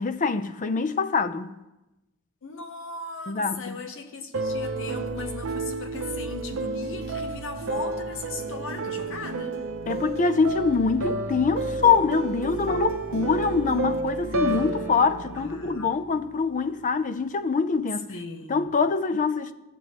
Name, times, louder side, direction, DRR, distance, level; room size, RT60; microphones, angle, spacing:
voice 1, 0.0-1.6 3.3-3.8 9.9-18.1 18.5-19.5, left 4 dB, 35° left, 0.4 m, -24 dB
voice 2, 2.4-9.6 15.5-15.9 18.1-18.7, left 3 dB, 65° left, 0.8 m, -38 dB
sound 1, 4.3-16.5, right 2 dB, 65° right, 0.7 m, -31 dB
14.5 x 7.6 x 2.9 m
head